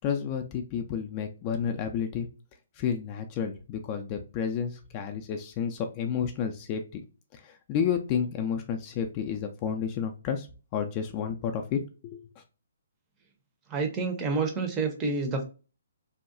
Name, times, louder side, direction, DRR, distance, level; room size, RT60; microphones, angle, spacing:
voice 1, 0.0-2.3 2.8-7.0 7.3-10.5 10.7-12.3, left 7 dB, 25° left, 5 dB, 0.3 m, -31 dB
voice 2, 13.7-15.4, right 4 dB, 20° right, 4 dB, 0.6 m, -28 dB
2.7 x 2.2 x 2.4 m, 0.33 s
figure-of-eight pair, 130°, 0 cm